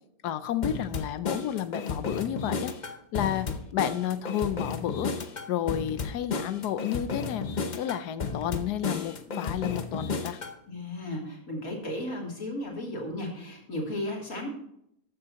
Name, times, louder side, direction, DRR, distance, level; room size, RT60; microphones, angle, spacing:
voice 1, 0.2-2.7 3.1-5.1 5.5-7.5 7.8-10.4, left 10 dB, 85° left, 12 dB, 1.2 m, -31 dB
sound 1, 0.6-10.6, left 5 dB, 40° left, 0.7 m, -33 dB
voice 2, 10.7-14.5, left 1 dB, 60° left, -1 dB, 3.3 m, -34 dB
13.5 x 9.9 x 2.9 m, 0.73 s
omnidirectional pair, 1.7 m